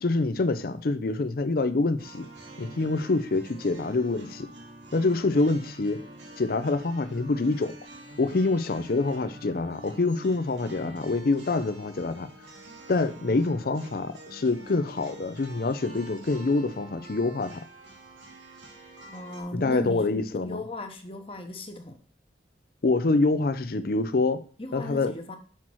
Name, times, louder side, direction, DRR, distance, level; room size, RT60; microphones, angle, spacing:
voice 1, 0.0-2.3 2.6-4.5 4.9-6.0 6.4-7.8 8.2-12.3 12.9-17.6 19.5-20.6 22.8-24.4 24.7-25.1, left 3 dB, 55° left, 12 dB, 0.5 m, -26 dB
sound 1, 2.0-19.4, right 1 dB, 80° right, 1.9 m, -47 dB
voice 2, 19.1-20.0 20.3-22.0 24.6-25.4, left 1 dB, 30° left, 6 dB, 1.0 m, -37 dB
5.8 x 4.5 x 6.1 m, 0.41 s
head